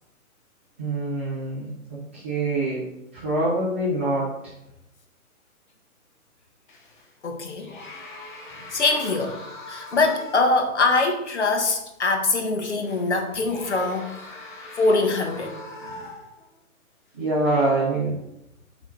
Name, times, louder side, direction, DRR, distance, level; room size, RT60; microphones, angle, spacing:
voice 1, 0.8-2.8 3.1-4.3 17.2-18.1, right 2 dB, 10° right, -11 dB, 0.6 m, -25 dB
sound 1, 6.7-7.1 7.6-10.8 11.2-11.3 12.8-16.5 17.2-17.4, left 2 dB, 35° left, 1.0 m, -41 dB
voice 2, 7.2-7.7 8.7-14.3 14.8-15.6, left 3 dB, 50° left, 4 dB, 1.3 m, -23 dB
7.3 x 3.0 x 4.9 m, 0.84 s
figure-of-eight pair, 135°, 44 cm